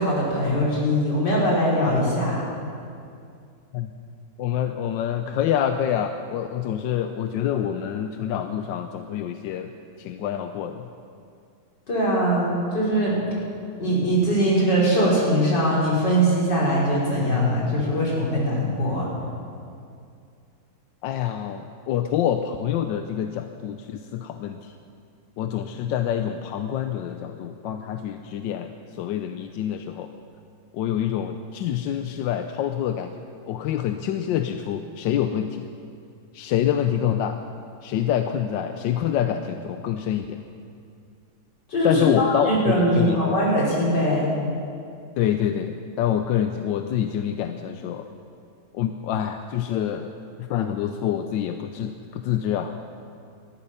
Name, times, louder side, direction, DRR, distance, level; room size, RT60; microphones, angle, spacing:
voice 1, 0.0-2.4 11.9-13.2 13.8-19.1 41.7-44.3, equal, 60° left, -5 dB, 4.7 m, -21 dB
voice 2, 4.4-9.7 10.0-10.8 21.0-24.7 25.4-30.1 30.7-35.7 36.3-37.4 37.8-40.4 41.8-43.3 45.2-48.1 48.7-50.1 50.4-52.7, left 10 dB, 75° left, 7 dB, 1.3 m, -26 dB
19.0 x 13.0 x 5.7 m, 2.4 s
omnidirectional pair, 2.1 m